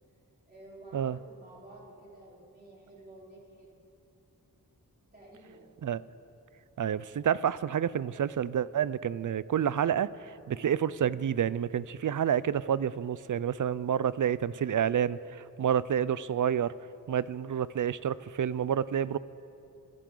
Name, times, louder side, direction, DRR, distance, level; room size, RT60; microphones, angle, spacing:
voice 1, 0.4-3.7 5.1-5.7, right 2 dB, 25° right, -5 dB, 4.0 m, -51 dB
voice 2, 6.8-16.7 17.1-19.2, right 9 dB, 55° right, 18 dB, 0.4 m, -29 dB
25.5 x 11.5 x 3.8 m, 2.7 s
wide cardioid pair, 90°, 37 cm